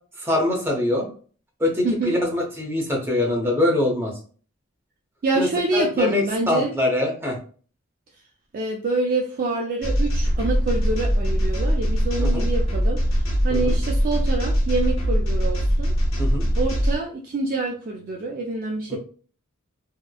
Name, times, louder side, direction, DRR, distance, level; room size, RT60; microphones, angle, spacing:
voice 1, 0.2-1.1 1.6-4.1 5.3-7.4 12.2-12.5 13.5-13.7 16.2-16.5, left 1 dB, 10° right, -1 dB, 0.7 m, -23 dB
voice 2, 1.8-2.2 5.2-6.7 8.5-13.0 13.4-15.9 16.6-19.0, right 3 dB, 45° right, 1 dB, 0.3 m, -26 dB
sound 1, 9.8-17.0, equal, 65° left, 0.9 m, -22 dB
2.9 x 2.0 x 2.2 m, 0.40 s
head